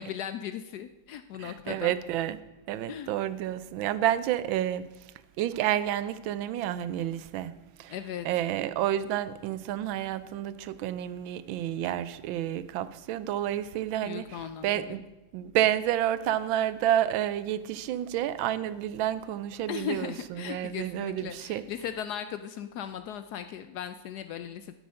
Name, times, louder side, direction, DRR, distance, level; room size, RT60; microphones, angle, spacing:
voice 1, 0.0-1.9 2.9-3.1 7.9-8.3 14.0-15.0 19.7-24.7, left 9 dB, 75° left, 1.0 m, -37 dB
voice 2, 1.4-4.9 5.4-7.5 7.8-7.9 8.2-15.0 15.3-21.6, right 12 dB, 85° right, 1.4 m, -30 dB
12.0 x 7.0 x 6.3 m
omnidirectional pair, 2.1 m